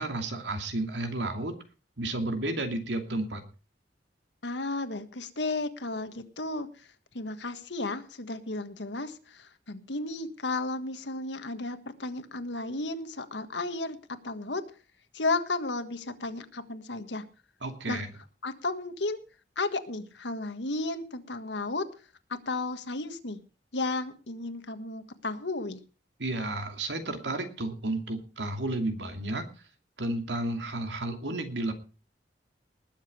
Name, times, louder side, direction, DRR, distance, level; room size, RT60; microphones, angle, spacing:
voice 1, 0.0-1.5 2.0-3.4 17.6-18.1 26.2-29.4 30.0-31.7, right 2 dB, 90° right, 6 dB, 2.6 m, -32 dB
voice 2, 4.4-6.9 7.1-14.0 14.2-14.6 15.1-17.2 17.9-18.0 18.4-19.2 19.5-21.9 22.4-23.4 23.7-25.8, left 2 dB, 85° left, 9 dB, 1.6 m, -33 dB
20.0 x 7.5 x 5.0 m, 0.35 s
head